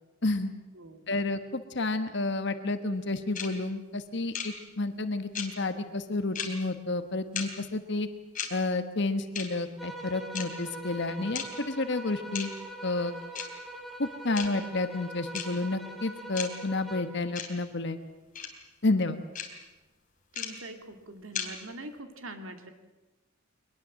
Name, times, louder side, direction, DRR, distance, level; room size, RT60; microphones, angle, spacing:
voice 1, 0.2-0.5 1.1-8.1 8.5-12.5 12.8-13.2 14.0-18.0 18.8-19.2, left 2 dB, 60° left, 9 dB, 1.3 m, -30 dB
voice 2, 0.7-1.1 20.3-22.7, right 1 dB, 90° right, 6 dB, 2.5 m, -43 dB
sound 1, 3.3-3.5 4.3-4.5 5.3-5.5 6.3-6.5 7.3-7.5 8.3-8.5 9.3-9.5 10.3-10.4 11.3-11.5 12.3-12.5 13.3-13.5 14.3-14.5 15.3-15.5 16.3-16.5 17.3-17.5 18.3-18.5 19.3-19.5 20.3-20.5 21.3-21.5, left 8 dB, 40° left, 3.5 m, -33 dB
sound 2, 9.8-17.2, right 2 dB, ahead, 3.6 m, -43 dB
23.0 x 20.5 x 7.5 m, 1.1 s
head